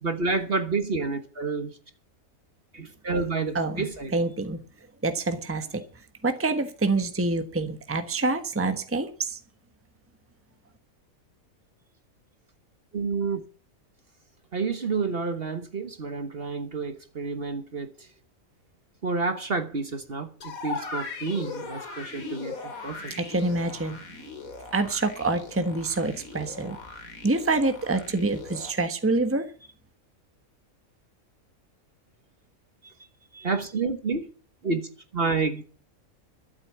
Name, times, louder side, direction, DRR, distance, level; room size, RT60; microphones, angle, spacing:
voice 1, 0.0-1.7 2.7-4.1 12.9-13.4 14.5-18.1 19.0-23.1 32.8-32.9 33.3-34.3 34.6-35.6, right 4 dB, 45° right, 1.5 m, -29 dB
voice 2, 3.5-4.6 5.0-5.8 6.2-9.4 23.2-24.0 24.7-26.8 27.2-29.5, right 3 dB, 10° right, 1.2 m, -26 dB
sound 1, 20.4-28.7, left 3 dB, 75° left, 2.7 m, -39 dB
12.5 x 8.2 x 8.7 m
omnidirectional pair, 1.5 m